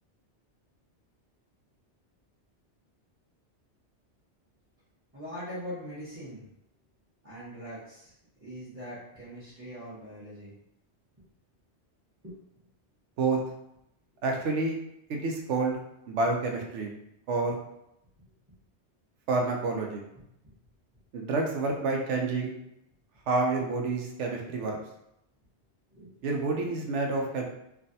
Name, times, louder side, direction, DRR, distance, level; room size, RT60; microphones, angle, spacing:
voice 1, 5.1-6.4 7.2-8.1 8.4-10.5 12.2-12.4 25.9-26.1, equal, 15° right, -9 dB, 0.8 m, -41 dB
voice 2, 14.2-14.8 15.1-15.8 16.1-16.9 17.3-17.6 19.3-20.0 21.1-22.5 23.3-24.8 26.2-27.4, right 3 dB, 90° right, 1 dB, 1.0 m, -28 dB
3.3 x 2.3 x 2.7 m, 0.80 s
omnidirectional pair, 1.2 m